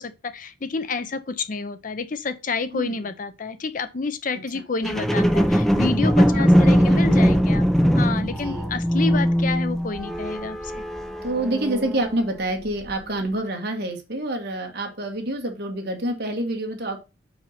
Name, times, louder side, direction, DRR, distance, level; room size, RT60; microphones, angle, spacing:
voice 1, 0.0-10.8, left 4 dB, 45° left, 0.6 m, -29 dB
sound 1, 4.8-12.3 12.8-12.9, equal, ahead, 0.6 m, -20 dB
voice 2, 6.8-7.2 8.2-8.7 11.2-17.0, right 1 dB, 55° right, 1.9 m, -27 dB
5.5 x 4.8 x 5.8 m
head